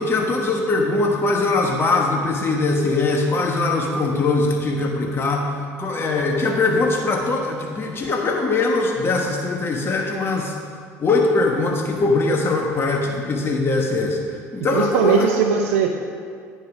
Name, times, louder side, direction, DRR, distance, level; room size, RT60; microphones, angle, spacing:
voice 1, 0.0-10.5 11.0-14.2 14.5-15.3, left 3 dB, 30° left, 0 dB, 1.2 m, -21 dB
voice 2, 14.7-15.9, right 6 dB, 75° right, 2 dB, 0.7 m, -19 dB
9.6 x 5.4 x 6.1 m, 2.1 s
hypercardioid pair, 75°, 7 cm